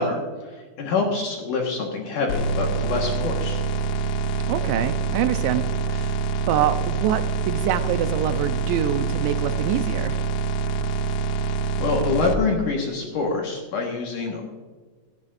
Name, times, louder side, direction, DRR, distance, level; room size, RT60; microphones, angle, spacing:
voice 1, 0.0-3.6 11.8-14.4, left 3 dB, 60° left, 0 dB, 2.4 m, -26 dB
sound 1, 2.3-12.3, right 4 dB, 85° left, 2.9 m, -25 dB
voice 2, 4.5-6.2 6.5-10.2, right 10 dB, 80° right, 10 dB, 2.8 m, -25 dB
16.5 x 11.0 x 2.6 m, 1.4 s
omnidirectional pair, 5.2 m